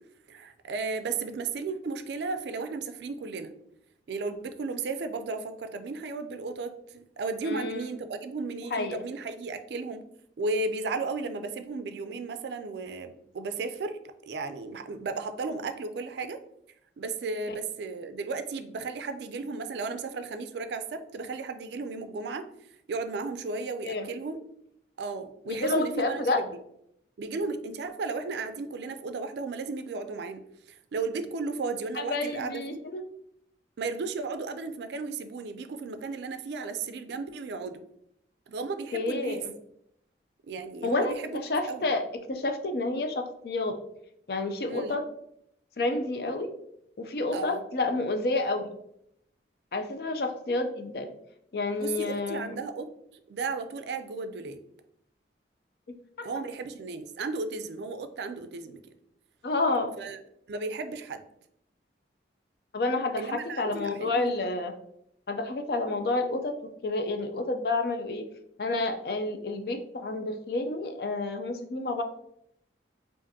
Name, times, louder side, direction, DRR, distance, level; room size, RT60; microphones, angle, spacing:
voice 1, 0.3-3.5 4.1-10.0 10.4-14.0 14.3-16.4 17.0-22.5 22.9-24.4 25.0-26.5 27.2-30.4 30.7-32.8 33.8-37.8 38.5-39.4 40.5-41.9 44.7-44.9 47.3-47.6 51.8-52.9 53.3-54.6 56.2-58.8 60.0-60.2 60.5-61.2 63.2-64.4, right 3 dB, 70° right, 9 dB, 0.4 m, -34 dB
voice 2, 7.4-7.9 8.7-9.0 23.8-24.1 25.5-26.4 31.9-33.0 38.9-39.5 40.8-41.2 41.4-42.0 42.3-43.7 44.3-45.0 45.8-46.5 47.0-48.7 49.7-51.1 51.5-52.6 56.2-56.3 59.4-59.9 62.7-64.7 65.3-66.5 66.8-68.2 68.6-72.0, left 2 dB, 55° left, 6 dB, 0.4 m, -29 dB
5.0 x 2.5 x 2.7 m, 0.74 s
head